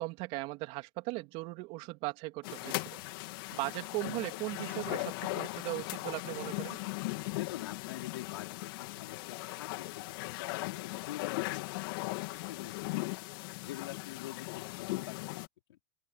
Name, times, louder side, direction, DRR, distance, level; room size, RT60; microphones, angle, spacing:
voice 1, 0.0-3.0 3.3-6.8, right 22 dB, 55° right, 3.2 m, -38 dB
sound 1, 2.4-15.5, left 23 dB, 65° left, 3.4 m, -38 dB
voice 2, 7.4-13.2 13.6-15.3 15.7-15.8, left 14 dB, 85° left, 4.5 m, -46 dB
open air
supercardioid pair, 125°, 13 cm